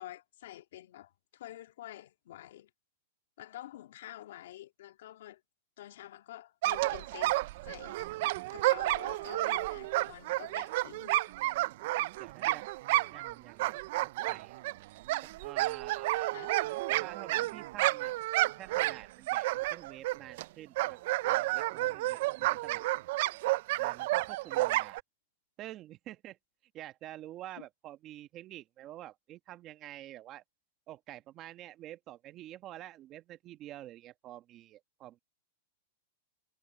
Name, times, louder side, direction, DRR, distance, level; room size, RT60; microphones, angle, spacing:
voice 1, 0.0-2.7 3.4-5.4 5.8-8.0 8.5-11.5 16.3-16.6 27.6-27.7, left 13 dB, 70° left, 1.9 m, -48 dB
sound 1, 6.6-13.3 13.6-20.5 20.8-25.0, right 18 dB, 55° right, 0.3 m, -31 dB
voice 2, 12.1-12.7 13.1-14.6 15.2-16.3 17.0-22.8 23.8-25.0 25.6-26.4 26.7-30.4 30.9-35.2, right 14 dB, 30° right, 1.1 m, -48 dB
hypercardioid pair, 140°, 0 cm